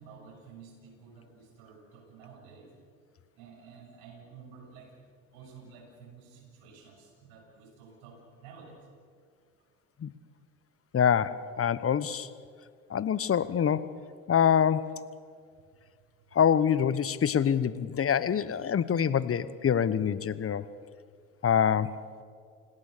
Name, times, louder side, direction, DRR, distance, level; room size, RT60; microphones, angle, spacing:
voice 1, 0.0-2.7 3.4-5.0 5.3-8.9 18.2-18.4 20.6-20.7, right 5 dB, 75° right, 0 dB, 7.0 m, -51 dB
voice 2, 10.9-12.3 12.9-14.0 14.3-15.0 16.3-20.7 21.4-21.9, left 8 dB, 35° left, 16 dB, 1.1 m, -25 dB
29.0 x 18.0 x 6.8 m, 2.2 s
hypercardioid pair, 65°, 38 cm